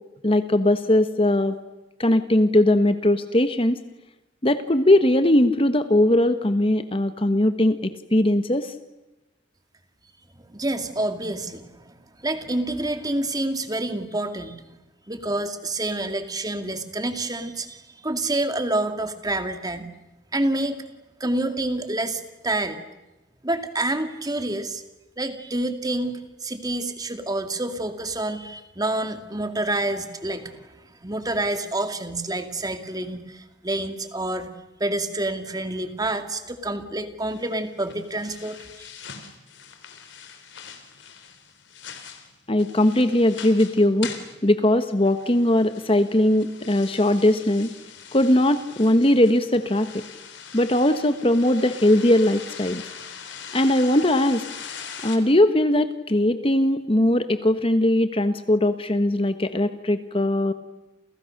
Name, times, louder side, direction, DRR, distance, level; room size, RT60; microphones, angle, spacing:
voice 1, 0.2-1.6 2.0-3.8 4.4-8.7 42.5-44.1 44.4-47.7 48.1-50.0 50.5-52.8 53.5-54.4 55.0-60.5, left 1 dB, 30° left, 10 dB, 1.3 m, -20 dB
voice 2, 10.5-14.6 15.1-19.9 20.3-20.8 21.2-22.8 23.4-24.8 25.2-30.7 31.0-34.5 34.8-38.9, right 2 dB, 20° right, 8 dB, 2.4 m, -28 dB
sound 1, 37.3-55.2, left 7 dB, 65° left, 3.8 m, -42 dB
29.5 x 29.5 x 6.7 m, 1.0 s
head